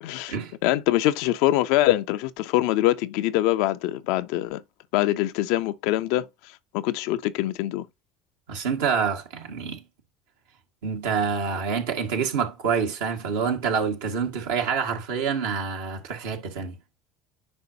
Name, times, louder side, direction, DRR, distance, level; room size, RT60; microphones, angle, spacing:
voice 1, 0.0-0.3 0.6-4.6 4.9-6.3 6.7-7.9, left 15 dB, 65° left, 0.5 m, -23 dB
voice 2, 8.5-9.8 10.8-16.8, right 6 dB, 70° right, 1.8 m, -27 dB
9.6 x 5.2 x 2.8 m
figure-of-eight pair, 65°, 0 cm